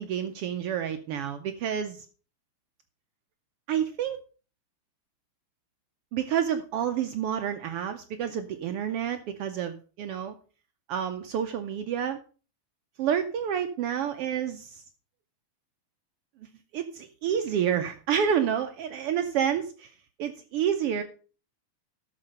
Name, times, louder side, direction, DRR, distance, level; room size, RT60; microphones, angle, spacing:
voice 1, 0.0-2.1 3.7-4.2 6.1-10.3 10.9-12.2 13.0-14.8 16.7-19.9 20.2-21.0, right 8 dB, 75° right, 8 dB, 1.3 m, -29 dB
11.5 x 6.5 x 5.3 m, 0.38 s
omnidirectional pair, 3.3 m